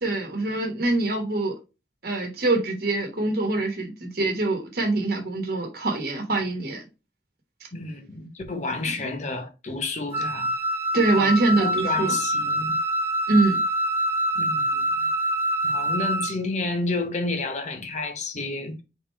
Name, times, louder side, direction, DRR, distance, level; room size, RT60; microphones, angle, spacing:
voice 1, 0.0-1.5 2.0-6.8 10.9-12.2 13.3-13.6, right 2 dB, 60° right, 1.2 m, -24 dB
voice 2, 7.7-10.5 11.2-11.3 11.6-12.8 14.3-14.8 15.6-18.8, left 3 dB, 40° left, 1.0 m, -30 dB
Wind instrument woodwind instrument, 10.1-16.3, right 1 dB, 15° right, 0.9 m, -25 dB
3.8 x 3.1 x 4.4 m
head